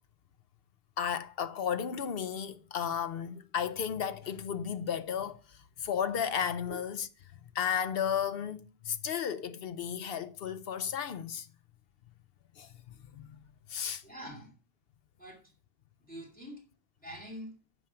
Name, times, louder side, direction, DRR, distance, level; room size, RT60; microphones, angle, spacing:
voice 1, 1.0-7.1 7.5-11.5 12.6-13.4 13.7-14.0, left 8 dB, 70° left, 0.9 m, -34 dB
voice 2, 14.0-14.5 15.2-15.5 16.0-16.6 17.0-17.5, equal, 10° left, 2.6 m, -45 dB
10.5 x 5.4 x 5.8 m
omnidirectional pair, 1.0 m